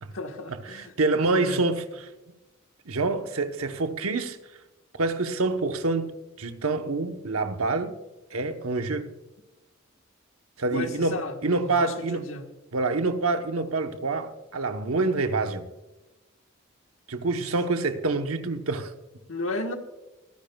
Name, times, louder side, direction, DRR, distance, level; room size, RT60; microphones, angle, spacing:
voice 1, 0.1-1.6 10.7-12.4 19.3-19.8, left 2 dB, 65° left, 1.4 m, -34 dB
voice 2, 0.7-2.1 2.8-4.6 4.9-7.9 8.3-9.1 10.6-12.3 12.7-15.7 17.1-18.9, right 3 dB, 80° right, 1.0 m, -27 dB
24.0 x 10.5 x 2.3 m
head